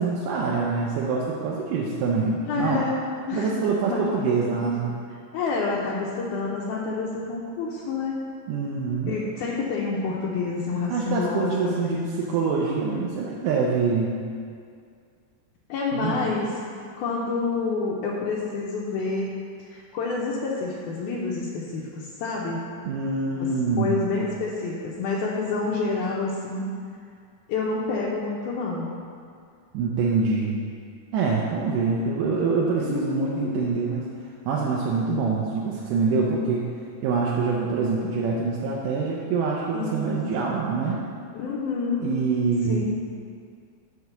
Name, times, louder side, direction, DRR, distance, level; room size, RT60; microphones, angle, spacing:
voice 1, 0.0-2.9 3.3-4.9 8.5-9.2 10.9-14.2 15.9-16.2 22.8-24.1 29.7-30.6 31.1-34.1 34.5-36.7 37.0-41.0 42.0-42.9, right 4 dB, 80° right, -3 dB, 2.2 m, -25 dB
voice 2, 2.4-3.0 3.3-3.6 3.9-4.7 5.3-8.2 9.1-12.2 15.7-16.5 17.0-19.4 19.6-22.6 23.4-23.5 23.8-26.7 27.5-28.9 32.8-33.5 39.7-40.5 41.3-42.1 42.6-42.9, left 4 dB, 75° left, -5 dB, 2.1 m, -28 dB
5.9 x 4.8 x 6.6 m, 2.3 s
omnidirectional pair, 3.9 m